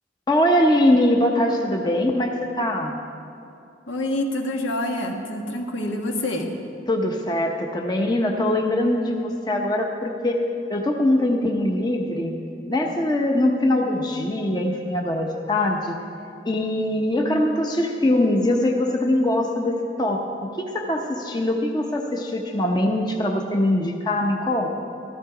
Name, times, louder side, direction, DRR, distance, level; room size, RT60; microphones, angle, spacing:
voice 1, 0.3-2.9 6.9-10.4 10.7-12.4 12.7-16.0 16.4-24.7, left 1 dB, 20° left, 1 dB, 0.8 m, -22 dB
voice 2, 3.9-6.5, left 1 dB, 80° left, 2 dB, 1.5 m, -27 dB
14.5 x 13.0 x 4.9 m, 2.7 s
head